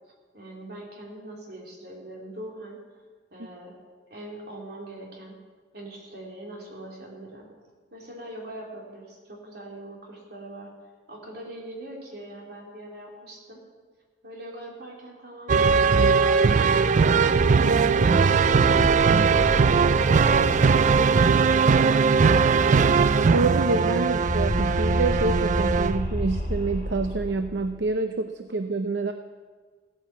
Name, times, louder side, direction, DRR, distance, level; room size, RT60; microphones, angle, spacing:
voice 1, 0.3-2.8 3.3-3.8 4.1-5.4 5.7-7.5 7.9-10.7 11.1-13.6 14.2-18.7, right 1 dB, 60° right, -2 dB, 3.6 m, -42 dB
sound 1, 15.5-26.0, right 5 dB, 45° right, 0.3 m, -20 dB
sound 2, 17.7-22.8 23.1-23.2 23.4-27.8, equal, 60° left, 2.7 m, -31 dB
voice 2, 23.3-29.1, right 3 dB, 80° right, 7 dB, 0.6 m, -27 dB
15.5 x 9.3 x 7.3 m, 1.5 s
head